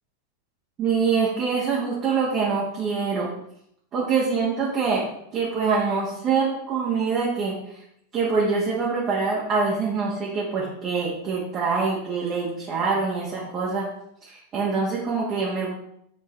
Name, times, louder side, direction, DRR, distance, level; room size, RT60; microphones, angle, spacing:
voice 1, 0.8-3.3 3.9-5.0 5.3-7.8 8.1-13.9 14.2-15.7, right 5 dB, 30° right, -6 dB, 1.5 m, -25 dB
7.9 x 4.4 x 3.3 m, 0.74 s
figure-of-eight pair, 90°, 0 cm